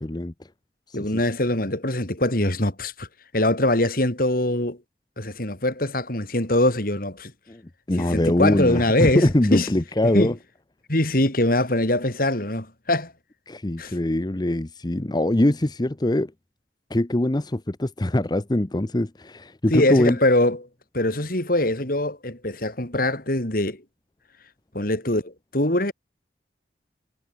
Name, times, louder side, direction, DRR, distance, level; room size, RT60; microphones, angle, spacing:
voice 1, 0.0-0.3 0.9-1.2 7.5-7.6 7.9-10.3 13.5-16.3 16.9-20.2, left 1 dB, 25° left, 0.8 m, -23 dB
voice 2, 0.9-3.1 3.3-4.8 5.2-7.3 8.0-9.7 10.1-10.3 10.9-13.1 13.8-13.9 19.7-20.6 20.9-23.8 24.7-25.9, left 1 dB, 55° left, 4.6 m, -23 dB
head